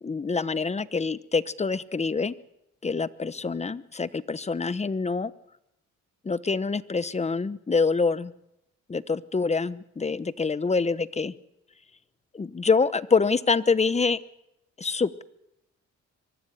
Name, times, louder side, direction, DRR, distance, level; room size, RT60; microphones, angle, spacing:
voice 1, 0.0-2.3 2.8-5.3 6.2-8.3 8.9-11.3 12.3-14.2 14.8-15.2, left 4 dB, 20° left, 15 dB, 1.0 m, -26 dB
24.0 x 14.5 x 9.9 m, 0.85 s
cardioid pair, 90°, 30 cm